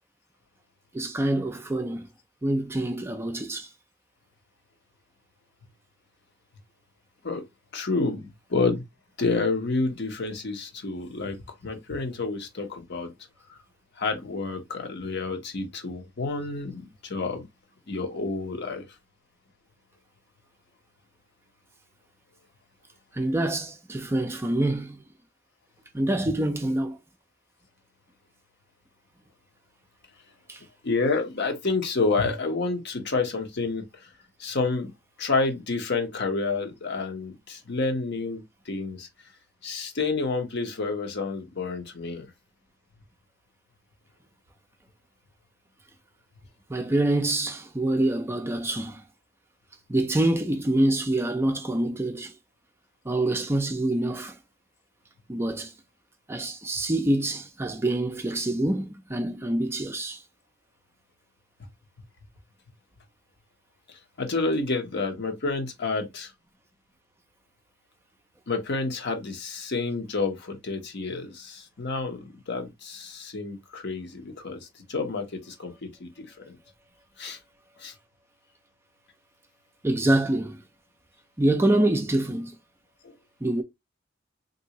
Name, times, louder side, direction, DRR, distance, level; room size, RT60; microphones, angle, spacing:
voice 1, 0.9-2.1 2.4-3.7 23.1-25.0 25.9-27.0 30.5-30.6 46.7-49.0 49.9-52.3 53.1-54.4 55.3-55.7 56.3-60.2 79.8-80.6 81.4-82.6 83.4-83.6, right 1 dB, 10° right, 0.4 m, -26 dB
voice 2, 7.7-8.8 9.2-11.4 11.6-13.1 13.5-13.6 14.0-17.5 17.9-18.8 30.8-34.1 34.4-34.9 35.2-39.1 39.6-42.3 63.9-66.3 68.5-76.6 77.2-77.4 77.8-77.9 83.0-83.1, left 3 dB, 60° left, 0.9 m, -29 dB
3.5 x 2.6 x 2.8 m
head